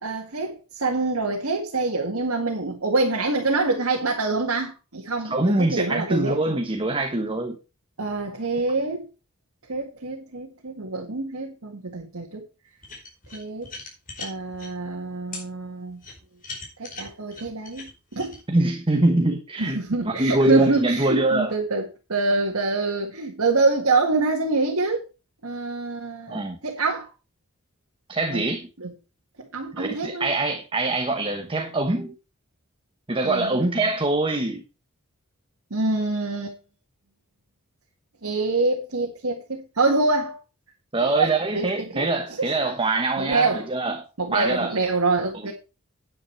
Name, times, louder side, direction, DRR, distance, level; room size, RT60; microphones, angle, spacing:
voice 1, 0.0-6.6 8.0-9.1 9.7-12.4 13.3-13.7 14.2-16.0 16.8-18.4 19.6-25.0 25.4-27.1 28.3-28.4 28.8-28.9 29.5-30.3 33.2-33.9 35.7-36.5 38.2-40.4 41.0-42.1 42.4-42.7 43.2-43.7 44.2-45.5, right 3 dB, 70° right, 1.9 m, -25 dB
voice 2, 5.2-7.6 18.5-19.8 20.0-21.5 26.3-26.6 28.1-28.7 29.7-32.1 33.1-34.6 40.9-44.0 44.3-44.8, right 2 dB, 25° right, 1.1 m, -24 dB
sound 1, 12.8-14.7 15.3-15.4 16.0-18.4, left 3 dB, 40° left, 4.8 m, -39 dB
9.8 x 9.2 x 4.6 m
head